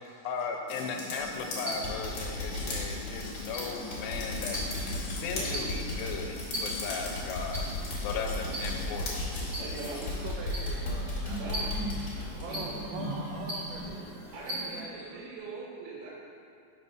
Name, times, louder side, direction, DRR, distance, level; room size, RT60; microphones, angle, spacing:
voice 1, 0.2-9.2, left 5 dB, 85° left, 3 dB, 2.4 m, -37 dB
sound 1, 0.7-10.3, left 2 dB, 65° left, 1.5 m, -40 dB
Semi-Auto Rifle Simulation, 1.2-1.5 1.8-13.4 13.7-13.9 14.3-14.4, left 2 dB, 50° left, 1.3 m, -36 dB
sound 2, 1.6-14.8, equal, 50° right, 1.2 m, -40 dB
voice 2, 8.1-8.4 9.7-11.7 12.3-14.1 14.4-15.2, right 4 dB, 90° right, -2 dB, 1.8 m, -43 dB
voice 3, 9.6-10.0 11.3-11.8 12.2-12.6 14.3-16.1, right 3 dB, 70° right, -6 dB, 3.0 m, -43 dB
5.5 x 4.2 x 5.5 m, 2.6 s
omnidirectional pair, 4.3 m